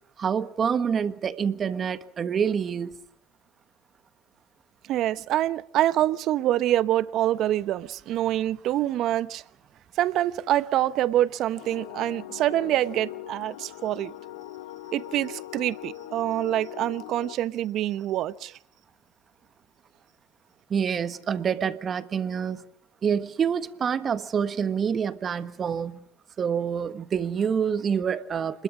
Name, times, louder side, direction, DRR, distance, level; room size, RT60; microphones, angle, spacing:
voice 1, 0.2-3.0 20.7-22.6 23.0-26.0 26.4-28.6, right 7 dB, 35° right, 1.5 m, -27 dB
voice 2, 4.9-9.4 10.0-14.1 14.9-18.6, right 13 dB, 55° right, 1.0 m, -26 dB
sound 1, 11.5-17.4, left 15 dB, 80° left, 0.9 m, -41 dB
26.5 x 21.0 x 6.2 m
supercardioid pair, 90°, 0 cm